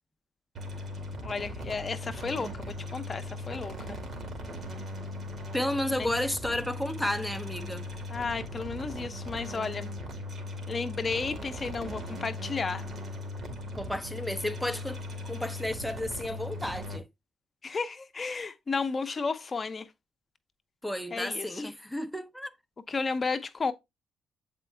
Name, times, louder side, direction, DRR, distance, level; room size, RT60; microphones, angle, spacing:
sound 1, 0.5-17.0, left 1 dB, 55° right, 2.0 m, -39 dB
voice 1, 1.2-4.0 6.0-6.1 8.1-9.9 10.7-12.8 17.6-19.9 21.1-21.7 22.9-23.7, left 4 dB, 35° left, 0.8 m, -33 dB
voice 2, 5.5-7.9 13.8-17.1 20.8-22.5, left 1 dB, 5° left, 0.7 m, -32 dB
7.4 x 4.5 x 3.3 m
cardioid pair, 90°, 0 cm